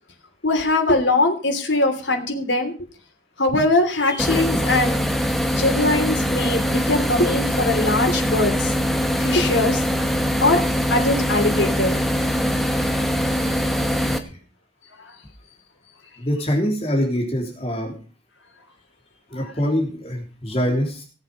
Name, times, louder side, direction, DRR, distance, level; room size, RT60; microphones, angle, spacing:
voice 1, 0.4-2.7 3.4-5.1 5.5-8.7 9.2-9.8 10.4-10.6 10.9-12.0 15.0-15.1 19.3-19.4, left 2 dB, 85° left, 4 dB, 3.1 m, -21 dB
sound 1, 4.2-14.2, equal, ahead, 1.1 m, -22 dB
voice 2, 16.2-17.9 19.3-21.0, equal, 35° left, 1 dB, 3.3 m, -24 dB
17.5 x 8.1 x 5.4 m, 0.37 s
head